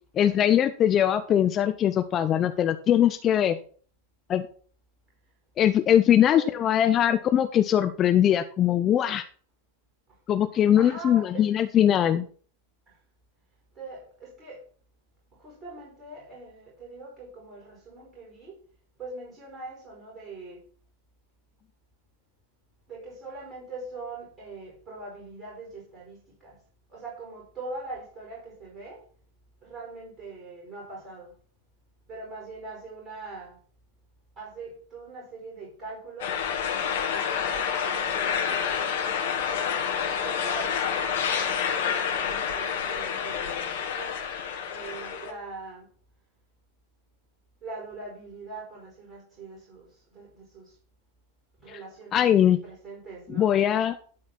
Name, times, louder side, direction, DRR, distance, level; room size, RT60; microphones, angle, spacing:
voice 1, 0.1-3.6 4.3-4.4 5.6-9.2 10.3-12.2 52.1-52.6 53.4-54.0, left 10 dB, 30° left, 0.6 m, -21 dB
voice 2, 10.8-11.5 12.9-13.0 13.7-14.6 15.3-18.6 19.0-20.6 22.9-26.6 26.9-29.1 29.6-31.3 32.1-33.6 34.3-36.4 37.1-43.6 43.9-44.3 44.6-45.9 47.6-50.8 51.6-52.3 52.6-53.5, right 3 dB, 25° right, 5.1 m, -42 dB
sound 1, 36.2-45.3, left 7 dB, 60° left, 1.9 m, -28 dB
12.5 x 4.3 x 6.2 m
figure-of-eight pair, 90°, 0 cm